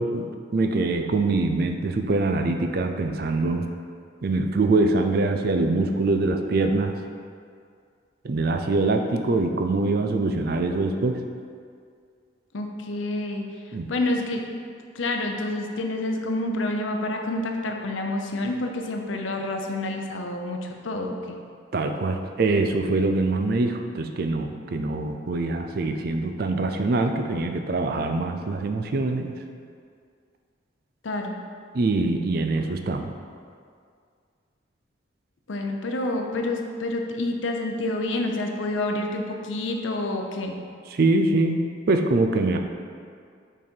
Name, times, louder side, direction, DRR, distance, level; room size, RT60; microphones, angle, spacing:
voice 1, 0.0-3.7 4.2-7.0 8.2-11.2 13.7-13.9 21.7-29.4 31.7-33.1 40.9-41.6 41.9-42.6, right 2 dB, 50° right, 6 dB, 0.4 m, -24 dB
voice 2, 12.5-13.4 13.9-14.5 14.9-21.4 31.0-31.4 35.5-40.5, left 2 dB, 85° left, 3 dB, 0.7 m, -28 dB
6.0 x 4.1 x 4.4 m, 2.2 s
head